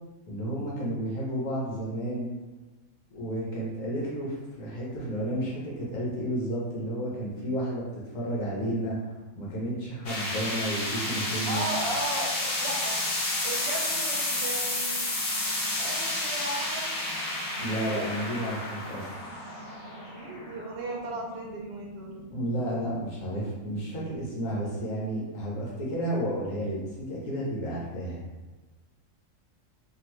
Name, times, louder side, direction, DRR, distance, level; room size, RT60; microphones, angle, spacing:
voice 1, 0.3-2.3 3.1-9.0 9.4-11.7 17.6-19.1 22.3-28.2, right 1 dB, 80° left, -5 dB, 1.3 m, -32 dB
sound 1, 10.1-21.2, left 2 dB, 55° left, 0.8 m, -31 dB
sound 2, 11.0-24.2, right 1 dB, 90° right, 1.0 m, -49 dB
voice 2, 11.5-13.0 13.4-15.1 15.7-17.0 17.8-18.1 19.9-22.2, right 2 dB, 60° right, -1 dB, 0.7 m, -36 dB
2.9 x 2.5 x 3.0 m, 1.2 s
omnidirectional pair, 1.4 m